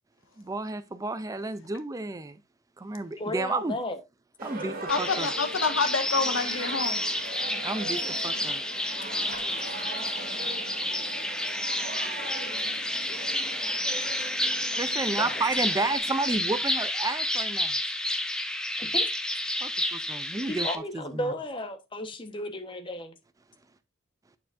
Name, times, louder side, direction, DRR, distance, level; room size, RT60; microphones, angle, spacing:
voice 1, 0.4-2.4 2.8-3.8 4.4-5.3 7.6-8.6 14.8-17.8 19.6-20.7 20.9-21.3, right 3 dB, 15° right, 0.4 m, -31 dB
voice 2, 3.2-4.0 9.2-9.3 15.2-15.4 18.8-19.1 20.5-23.1, left 1 dB, 25° left, 1.1 m, -34 dB
sound 1, 4.4-16.0, right 2 dB, 45° right, 2.6 m, -40 dB
voice 3, 4.9-7.0, left 4 dB, 75° left, 1.4 m, -27 dB
sound 2, 4.9-20.7, left 1 dB, 5° left, 0.7 m, -30 dB
sound 3, 6.8-16.4, left 2 dB, 45° left, 5.3 m, -51 dB
8.8 x 6.7 x 2.5 m
head